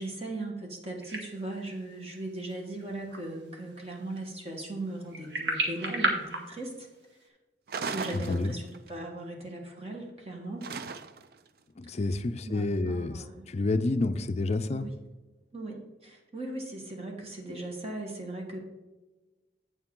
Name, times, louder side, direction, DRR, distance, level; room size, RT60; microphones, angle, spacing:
voice 1, 0.0-6.7 7.9-10.7 12.4-13.6 14.7-15.0 15.5-18.6, right 2 dB, 35° right, 0 dB, 1.4 m, -38 dB
sound 1, 1.0-7.2, right 2 dB, 80° right, 1.6 m, -35 dB
sound 2, 7.7-8.9 10.6-11.4, right 5 dB, 55° right, 0.5 m, -37 dB
voice 2, 11.8-13.2 13.5-14.9, left 2 dB, 40° left, 11 dB, 0.4 m, -29 dB
8.3 x 7.2 x 3.7 m, 1.2 s
head